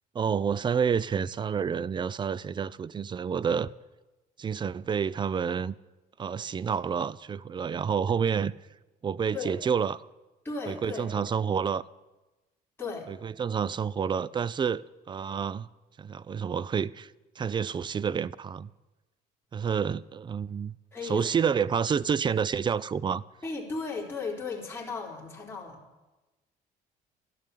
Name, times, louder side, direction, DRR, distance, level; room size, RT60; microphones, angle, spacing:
voice 1, 0.1-3.7 4.4-5.7 6.2-8.5 9.0-10.0 10.7-11.8 13.1-15.7 16.0-18.7 19.5-20.8 21.0-23.2, right 7 dB, 25° right, 0.4 m, -29 dB
voice 2, 10.4-11.2 12.8-13.1 20.9-21.3 23.4-25.8, left 4 dB, 15° left, 3.9 m, -35 dB
13.0 x 10.5 x 8.4 m
cardioid pair, 110°, 17 cm